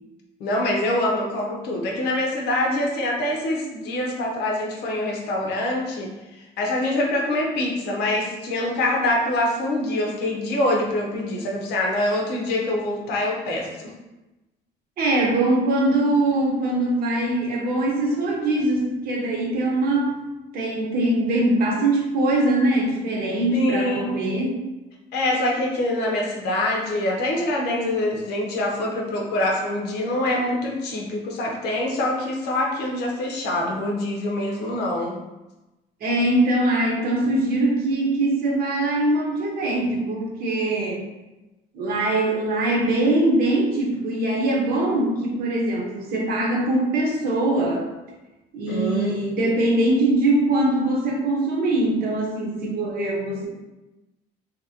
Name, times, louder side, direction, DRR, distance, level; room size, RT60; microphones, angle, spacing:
voice 1, 0.4-6.1 6.6-13.9 23.5-24.2 25.1-35.1 48.7-49.1, left 1 dB, 80° left, -1 dB, 0.7 m, -25 dB
voice 2, 15.0-20.1 20.5-24.6 36.0-41.0 41.7-47.8 48.5-53.4, right 1 dB, 60° right, -1 dB, 0.9 m, -22 dB
2.8 x 2.6 x 2.7 m, 1.0 s
cardioid pair, 110°, 17 cm